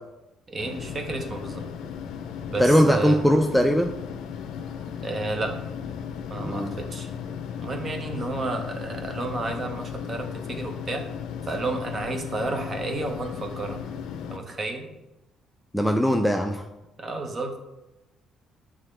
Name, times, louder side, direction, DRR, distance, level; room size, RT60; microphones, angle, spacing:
voice 1, 0.5-1.6 2.5-3.2 5.0-5.6 6.3-7.1 7.6-11.0 11.5-13.8 14.3-14.9 17.0-17.6, right 2 dB, 35° right, 4 dB, 0.9 m, -31 dB
sound 1, 0.6-14.4, left 7 dB, 75° left, 0.4 m, -36 dB
voice 2, 2.6-3.9 6.4-6.7 15.7-16.7, equal, ahead, 3 dB, 0.3 m, -20 dB
8.9 x 3.6 x 3.2 m, 0.98 s
cardioid pair, 125°, 0 cm